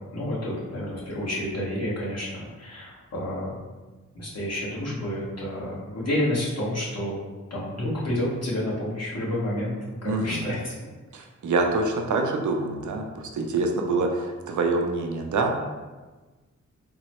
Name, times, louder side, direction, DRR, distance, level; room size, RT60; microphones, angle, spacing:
voice 1, 0.1-3.6 4.1-7.2 7.5-9.7 10.0-10.7, left 1 dB, 55° left, -6 dB, 1.1 m, -29 dB
voice 2, 10.0-10.5 11.1-15.5, right 3 dB, 70° right, 2 dB, 0.5 m, -26 dB
3.7 x 2.0 x 2.9 m, 1.3 s
cardioid pair, 65°, 31 cm